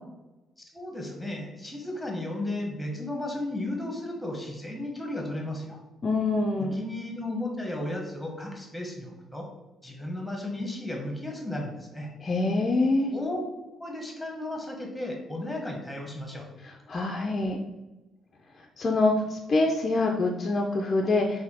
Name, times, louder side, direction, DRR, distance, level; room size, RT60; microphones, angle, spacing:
voice 1, 0.7-5.8 6.6-9.5 9.8-12.1 13.1-13.4 13.8-16.5, left 1 dB, ahead, 0 dB, 0.9 m, -34 dB
voice 2, 6.0-6.8 12.2-13.1 16.9-17.6 18.8-21.4, left 2 dB, 35° left, 2 dB, 0.4 m, -25 dB
4.1 x 2.6 x 4.1 m, 1.0 s
cardioid pair, 140°, 0 cm